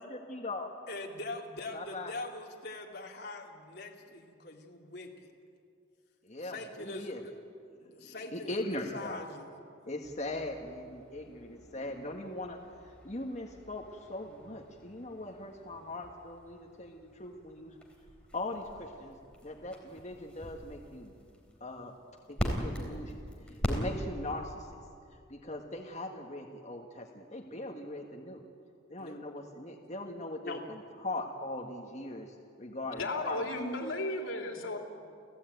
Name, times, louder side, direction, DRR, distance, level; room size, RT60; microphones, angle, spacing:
voice 1, 0.0-0.7 1.7-2.1 6.2-7.2 8.3-9.2 9.8-12.6 13.0-17.7 18.3-19.1 19.4-21.1 21.6-21.9 22.3-24.7 25.3-28.4 28.9-30.6 31.0-33.4, left 2 dB, 35° left, 0 dB, 1.6 m, -40 dB
voice 2, 0.9-5.3 6.4-7.4 7.8-9.5 29.0-29.2 30.4-30.6, left 2 dB, 55° left, 0 dB, 2.8 m, -42 dB
sound 1, 10.0-24.4, equal, 5° left, 3.6 m, -42 dB
voice 3, 33.0-34.8, left 2 dB, 85° left, 2 dB, 3.4 m, -34 dB
30.0 x 15.5 x 9.2 m, 2.4 s
head